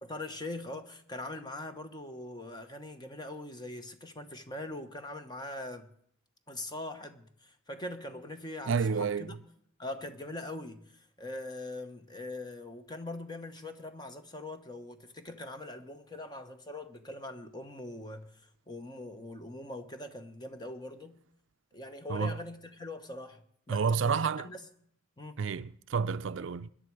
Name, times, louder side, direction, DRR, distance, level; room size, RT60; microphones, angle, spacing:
voice 1, 0.0-5.9 6.5-9.4 9.8-21.2 21.7-24.6 25.2-25.4, left 2 dB, 20° left, 1.1 m, -42 dB
voice 2, 8.7-9.4 22.1-22.4 23.7-24.5 25.4-26.7, right 5 dB, 65° right, 0.5 m, -30 dB
21.5 x 10.5 x 4.8 m
head